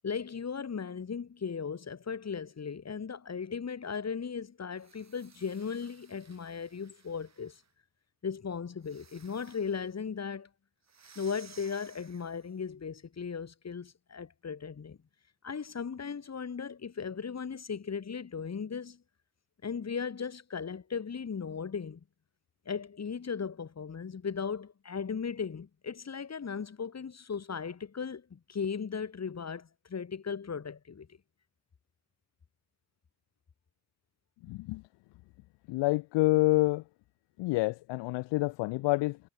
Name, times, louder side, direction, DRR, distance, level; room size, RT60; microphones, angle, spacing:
voice 1, 0.0-7.6 8.2-10.5 11.1-15.0 15.4-19.0 19.6-22.0 22.6-31.1, left 6 dB, 35° left, 5.0 m, -37 dB
sound 1, 4.7-7.7 8.8-10.0 10.9-12.6, right 6 dB, 35° right, 7.3 m, -58 dB
voice 2, 34.4-34.8 35.7-36.8 37.4-39.2, left 21 dB, 65° left, 1.1 m, -27 dB
hypercardioid pair, 60°, 46 cm